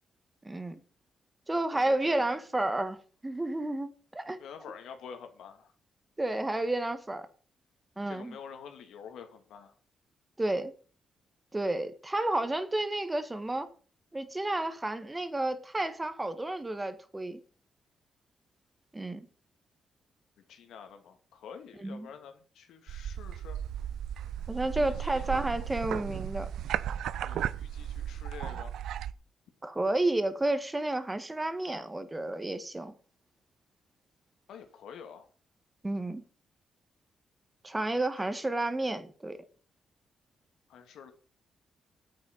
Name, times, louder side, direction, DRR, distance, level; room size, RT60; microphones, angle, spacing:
voice 1, 0.4-0.8 1.5-3.0 3.2-4.4 6.2-7.3 8.0-8.4 10.4-10.7 11.5-13.7 14.1-17.4 18.9-19.3 21.8-22.1 24.5-26.5 29.6-32.9 35.8-36.2 37.6-39.4, right 2 dB, 15° right, 1.6 m, -31 dB
voice 2, 1.7-2.4 4.4-5.7 8.1-9.8 20.5-23.6 24.8-25.2 27.2-28.7 34.5-35.3 38.2-38.4 40.7-41.1, left 7 dB, 90° left, 2.5 m, -48 dB
sound 1, 22.9-29.1, right 10 dB, 85° right, 0.6 m, -35 dB
9.5 x 8.5 x 8.7 m
cardioid pair, 130°, 0 cm